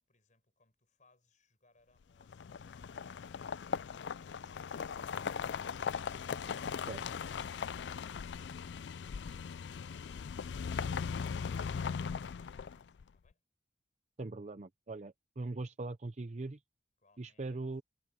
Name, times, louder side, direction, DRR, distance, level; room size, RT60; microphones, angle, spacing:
voice 1, 0.0-3.8 17.0-17.6, left 3 dB, 45° left, 4.9 m, -71 dB
sound 1, 2.2-13.0, left 6 dB, 75° left, 0.4 m, -39 dB
voice 2, 14.2-16.6 17.2-17.8, right 2 dB, 40° right, 0.6 m, -41 dB
head